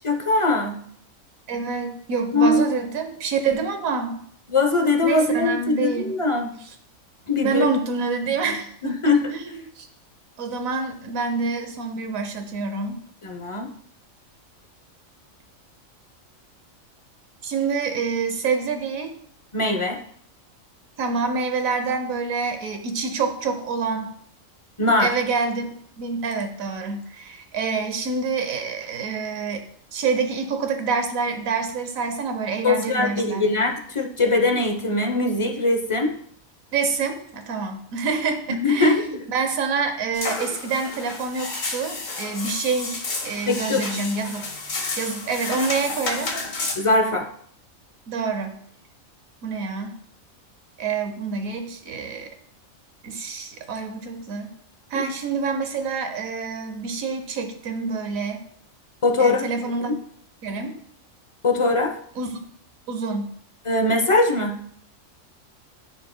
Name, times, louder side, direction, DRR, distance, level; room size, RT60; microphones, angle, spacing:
voice 1, 0.0-0.8 2.3-2.7 4.5-6.5 7.3-7.7 8.3-9.2 13.2-13.7 19.5-20.0 24.8-25.1 32.6-36.1 38.5-39.2 43.5-43.8 46.7-47.3 54.9-55.0 59.0-59.5 59.9-60.0 61.4-61.9 63.7-64.6, left 2 dB, 30° left, 3 dB, 0.6 m, -21 dB
voice 2, 1.5-4.2 5.0-6.1 7.4-9.0 9.3-9.9 10.4-13.0 17.4-19.1 21.0-24.1 25.0-25.7 26.0-29.6 29.9-33.5 36.7-44.5 45.0-46.3 48.1-48.6 49.4-49.9 50.8-52.3 53.0-54.5 54.9-58.4 59.2-59.9 60.4-60.7 62.2-62.3 62.9-63.3, right 4 dB, 85° right, 6 dB, 1.3 m, -27 dB
sound 1, 40.1-46.7, left 3 dB, 70° left, 1.8 m, -31 dB
13.0 x 4.7 x 2.2 m, 0.65 s
omnidirectional pair, 1.4 m